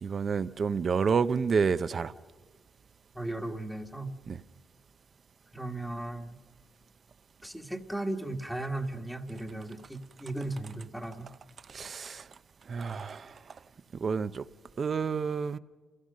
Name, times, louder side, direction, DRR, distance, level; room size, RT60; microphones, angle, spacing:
voice 1, 0.0-2.1 4.3-4.4 11.7-12.3 12.7-13.4 14.0-14.4 14.8-15.6, right 5 dB, 45° right, 0.7 m, -29 dB
voice 2, 3.1-4.1 5.5-6.4 7.4-11.3, right 2 dB, ahead, 1.4 m, -36 dB
30.0 x 16.5 x 6.5 m
cardioid pair, 90°, 0 cm